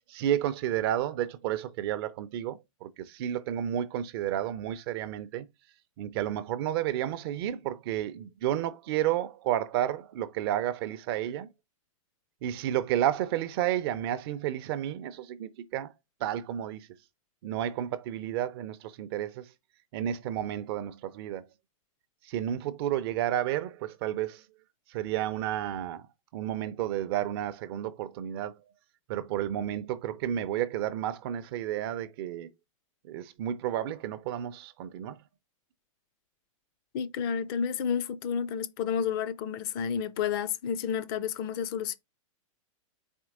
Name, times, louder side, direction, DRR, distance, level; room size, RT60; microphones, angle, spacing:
voice 1, 0.1-5.5 6.0-11.5 12.4-15.9 16.2-16.9 17.4-19.4 19.9-21.5 22.3-24.4 24.9-26.0 26.3-28.6 29.1-32.5 33.0-35.2, right 11 dB, 45° right, 0.5 m, -31 dB
voice 2, 36.9-42.0, left 7 dB, 40° left, 0.4 m, -31 dB
4.4 x 2.9 x 3.6 m
hypercardioid pair, 135°, 18 cm